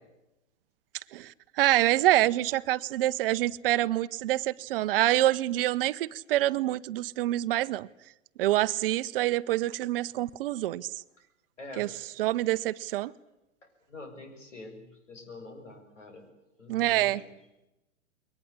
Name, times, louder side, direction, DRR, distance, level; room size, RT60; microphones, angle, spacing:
voice 1, 1.1-7.9 8.4-10.9 11.8-11.9 12.2-13.1 16.7-17.2, right 15 dB, 50° right, 0.9 m, -26 dB
voice 2, 11.6-11.9 13.9-16.2 16.6-17.3, left 2 dB, 75° left, 7.5 m, -45 dB
22.5 x 19.5 x 9.8 m
figure-of-eight pair, 105°, 37 cm